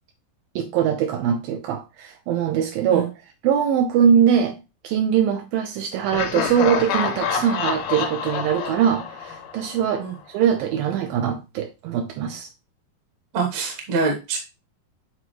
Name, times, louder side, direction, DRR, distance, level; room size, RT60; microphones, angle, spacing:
voice 1, 0.6-3.1 3.4-4.6 4.8-12.5, right 8 dB, 80° right, 4 dB, 2.3 m, -22 dB
Laughter, 6.1-10.0, left 6 dB, 80° left, 1.6 m, -27 dB
voice 2, 13.3-14.4, right 4 dB, 60° right, 2 dB, 2.1 m, -25 dB
9.3 x 3.8 x 3.0 m, 0.27 s
omnidirectional pair, 4.2 m